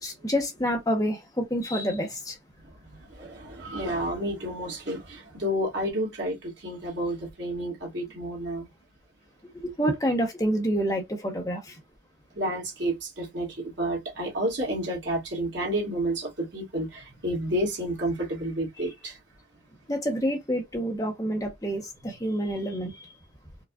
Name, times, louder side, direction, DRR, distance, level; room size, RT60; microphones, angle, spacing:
voice 1, 0.0-2.4 9.4-11.8 19.9-23.1, equal, 20° left, 0.8 m, -28 dB
voice 2, 2.6-8.7 12.3-19.2, right 1 dB, 75° right, 1.7 m, -30 dB
4.7 x 2.4 x 2.3 m
head